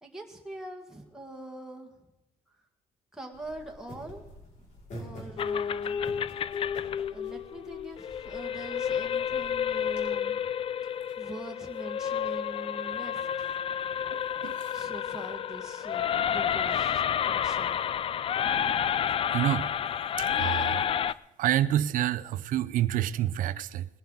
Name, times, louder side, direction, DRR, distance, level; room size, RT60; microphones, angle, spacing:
voice 1, 0.0-1.9 3.1-4.7 4.9-6.1 7.1-10.4 11.2-13.5 14.7-17.8, right 2 dB, 5° right, 1.8 m, -43 dB
sound 1, 3.3-10.0, equal, 60° left, 5.4 m, -48 dB
sound 2, 5.4-21.1, left 8 dB, 40° left, 0.4 m, -30 dB
voice 2, 14.1-14.7 19.3-19.7 20.2-20.8 21.4-23.9, right 12 dB, 75° right, 0.6 m, -28 dB
20.5 x 11.5 x 4.0 m
cardioid pair, 120°, 14 cm